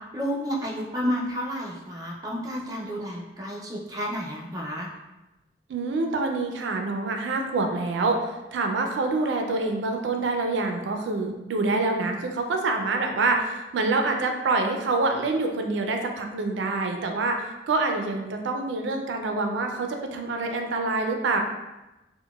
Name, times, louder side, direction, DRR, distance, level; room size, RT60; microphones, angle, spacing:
voice 1, 0.1-4.9, equal, 20° right, -3 dB, 0.4 m, -31 dB
voice 2, 5.7-8.2 8.5-21.4, right 3 dB, 85° right, 4 dB, 0.4 m, -26 dB
3.8 x 2.1 x 2.2 m, 1.0 s
head